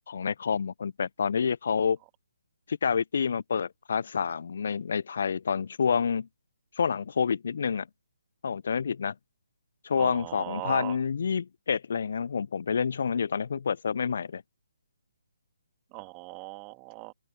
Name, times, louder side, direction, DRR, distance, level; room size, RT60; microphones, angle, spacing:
voice 1, 0.1-2.0 2.7-6.3 6.8-7.9 8.4-9.1 9.8-14.4, left 6 dB, 55° left, 0.7 m, -28 dB
voice 2, 9.9-11.0 15.9-17.1, right 33 dB, 20° right, 2.7 m, -39 dB
open air
figure-of-eight pair, 140°, 0 cm